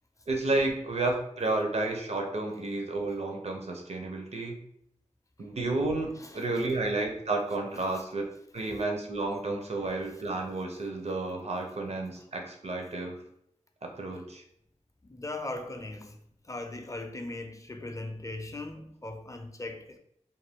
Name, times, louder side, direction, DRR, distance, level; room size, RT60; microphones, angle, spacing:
voice 1, 0.3-4.6 5.4-8.2 8.5-13.2 13.8-14.4, right 2 dB, 55° right, 0.6 m, -31 dB
voice 2, 15.0-16.2 16.4-20.0, left 2 dB, 25° left, 0.4 m, -39 dB
2.5 x 2.2 x 3.4 m
cardioid pair, 45°, 13 cm